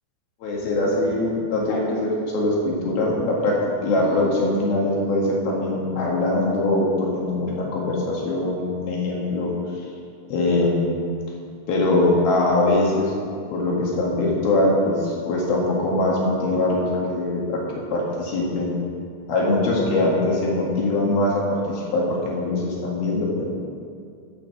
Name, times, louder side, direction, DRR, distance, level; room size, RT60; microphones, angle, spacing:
voice 1, 0.4-3.5 3.8-9.5 10.3-10.8 11.7-13.1 13.5-17.6 17.9-18.8 19.3-21.4 21.7-23.4, left 2 dB, 60° left, -4 dB, 3.4 m, -22 dB
12.5 x 5.7 x 7.1 m, 2.3 s
omnidirectional pair, 5.6 m